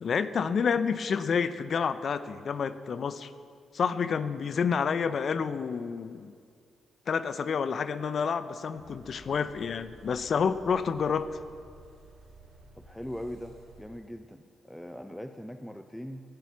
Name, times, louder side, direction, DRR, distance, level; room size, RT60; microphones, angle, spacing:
voice 1, 0.0-3.3 3.7-6.3 7.1-11.4, left 6 dB, 60° left, 13 dB, 0.7 m, -29 dB
sound 1, 8.8-13.9, right 2 dB, 80° right, 4.6 m, -53 dB
voice 2, 12.8-16.2, equal, 5° left, 7 dB, 0.8 m, -41 dB
18.0 x 10.5 x 6.1 m, 2.3 s
hypercardioid pair, 45°, 0 cm